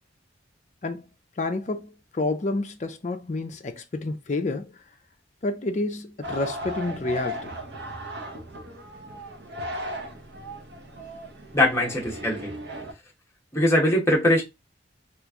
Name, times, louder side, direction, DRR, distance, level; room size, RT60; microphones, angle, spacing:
voice 1, 1.4-4.8 5.4-7.5, left 2 dB, 40° left, 0.4 m, -29 dB
sound 1, 6.2-12.9, equal, 60° right, 0.7 m, -36 dB
voice 2, 11.5-12.5 13.5-14.4, left 1 dB, 15° left, 0.9 m, -21 dB
2.9 x 2.5 x 3.5 m
head